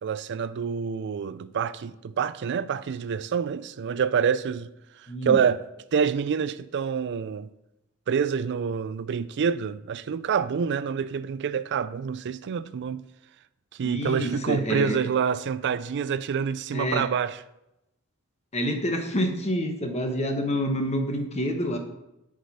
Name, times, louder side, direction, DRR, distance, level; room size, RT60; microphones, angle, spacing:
voice 1, 0.0-4.7 5.0-5.6 5.9-7.5 8.1-13.0 13.7-17.4, right 7 dB, 55° right, 0.4 m, -27 dB
voice 2, 5.1-5.4 13.8-15.0 16.7-17.0 18.5-21.8, equal, 30° left, 1.0 m, -27 dB
10.0 x 5.0 x 4.1 m
head